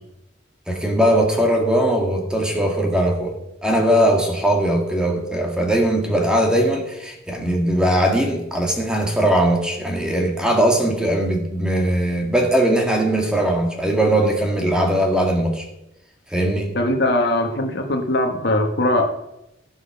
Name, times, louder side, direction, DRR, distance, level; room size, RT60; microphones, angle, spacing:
voice 1, 0.7-3.4 3.6-15.7 16.3-16.7, right 1 dB, 5° right, 2 dB, 1.7 m, -20 dB
voice 2, 16.7-19.1, left 1 dB, 60° left, 4 dB, 1.4 m, -20 dB
15.5 x 5.8 x 5.8 m, 0.88 s
head